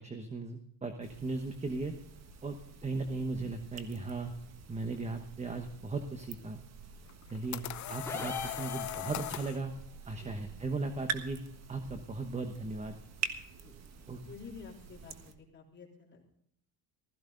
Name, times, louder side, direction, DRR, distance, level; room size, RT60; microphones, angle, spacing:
voice 1, 0.0-1.9 2.4-2.6 2.8-4.3 4.7-6.6 7.3-9.7 10.1-11.4 11.7-13.0 14.1-14.2, right 3 dB, 20° right, 6 dB, 1.1 m, -37 dB
sound 1, 1.0-15.3, right 6 dB, 45° right, 1.5 m, -46 dB
sound 2, 7.1-9.6, left 14 dB, 50° left, 0.6 m, -39 dB
sound 3, 8.1-9.4, left 4 dB, 5° left, 2.6 m, -40 dB
voice 2, 10.2-10.5 11.8-12.0 13.6-13.7 14.2-16.2, left 5 dB, 30° left, -2 dB, 3.5 m, -51 dB
16.0 x 14.5 x 3.9 m, 0.71 s
cardioid pair, 135°, 36 cm